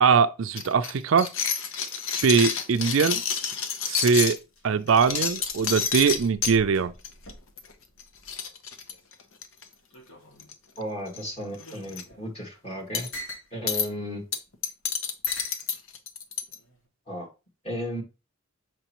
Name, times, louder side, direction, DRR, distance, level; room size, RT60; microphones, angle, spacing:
voice 1, 0.0-1.3 2.2-3.2 3.8-4.4 4.6-6.9, right 5 dB, 70° right, 0.4 m, -21 dB
sound 1, 0.6-4.4 4.9-6.5 7.0-7.3 7.6-7.7 8.0-8.1 8.3-9.6 10.4-10.8 11.1-11.2 11.6-12.0 12.9-13.2 13.7-13.9 14.3-16.5, left 7 dB, 70° left, 0.9 m, -29 dB
sound 2, 4.5-9.1 9.4-10.7 11.3-13.5 14.4-14.5 15.3-15.6 16.5-16.9, equal, 90° left, 2.1 m, -46 dB
voice 2, 10.8-13.1 13.5-14.2 17.1-17.3 17.6-18.0, equal, 30° left, 2.2 m, -34 dB
6.7 x 4.7 x 3.0 m
head